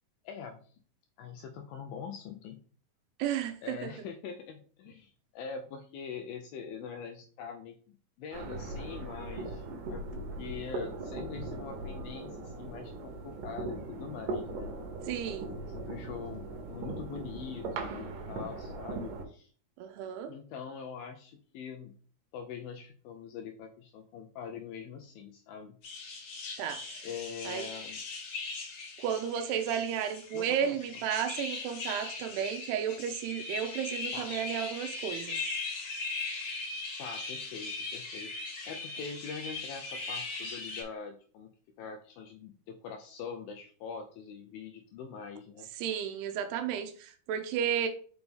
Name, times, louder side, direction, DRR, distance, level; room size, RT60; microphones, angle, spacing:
voice 1, 0.2-0.8 1.2-2.6 3.6-14.7 15.5-19.5 20.3-22.0 22.3-25.8 27.0-28.0 30.3-30.8 34.1-34.4 37.0-45.7, left 6 dB, 80° left, 2.1 m, -43 dB
voice 2, 3.2-3.8 15.1-15.5 19.8-20.3 26.6-27.0 27.5-27.6 29.0-35.4 45.8-47.9, right 9 dB, 85° right, 2.7 m, -33 dB
sound 1, 8.3-19.3, right 2 dB, 70° right, 2.3 m, -39 dB
sound 2, 25.8-40.8, left 3 dB, 50° left, 2.6 m, -39 dB
6.1 x 5.2 x 3.5 m
omnidirectional pair, 4.8 m